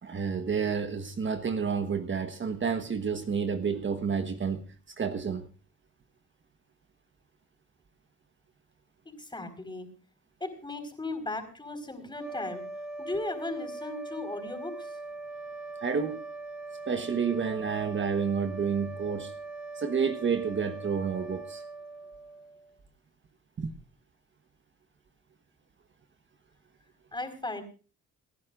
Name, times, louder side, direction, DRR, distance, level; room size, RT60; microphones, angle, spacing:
voice 1, 0.0-5.5 15.8-16.2 16.9-19.3 19.7-21.6 23.6-23.7, right 6 dB, 40° right, 1.3 m, -30 dB
voice 2, 9.0-9.9 10.4-12.6 13.0-14.9 27.1-27.6, left 2 dB, 15° left, 4.7 m, -36 dB
sound 1, 12.1-22.7, right 3 dB, 5° right, 2.0 m, -41 dB
30.0 x 11.0 x 2.6 m
cardioid pair, 90°, 30 cm